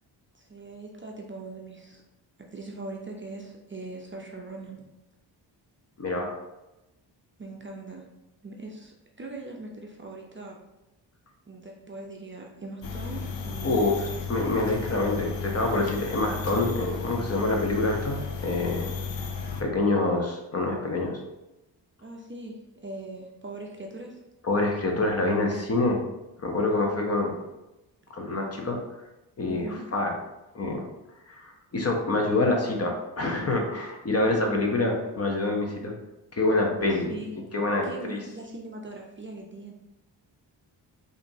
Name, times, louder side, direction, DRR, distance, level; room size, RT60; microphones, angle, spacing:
voice 1, 0.3-2.0 2.4-4.9 7.4-8.0 8.4-10.6 11.5-14.3 22.0-24.2 29.5-29.8 36.9-37.3 37.8-39.7, right 2 dB, 30° right, 0 dB, 0.5 m, -41 dB
voice 2, 6.0-6.3 13.6-13.9 14.3-18.2 18.4-18.9 19.6-21.2 24.4-26.0 26.4-27.4 28.1-28.8 29.4-30.1 30.5-30.9 31.3-35.9 36.3-37.1 37.5-38.2, left 2 dB, 35° left, 1 dB, 0.7 m, -26 dB
sound 1, 12.8-19.6, left 5 dB, 85° left, 0.6 m, -34 dB
5.0 x 2.6 x 2.7 m, 0.97 s
cardioid pair, 90°, 44 cm